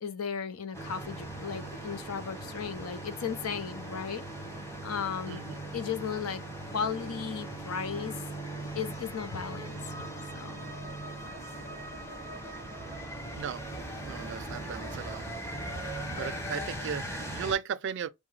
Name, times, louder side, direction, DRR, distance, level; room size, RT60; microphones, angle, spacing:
voice 1, 0.0-4.2 4.8-5.4 5.7-6.4 6.7-8.2 8.7-9.8 10.3-10.7, left 7 dB, 85° left, 0.6 m, -35 dB
sound 1, 0.7-17.5, right 1 dB, 15° left, 1.0 m, -39 dB
voice 2, 5.3-5.6 13.3-13.6 14.0-15.2 16.2-18.1, right 7 dB, 55° right, 0.3 m, -36 dB
4.7 x 2.1 x 3.1 m
head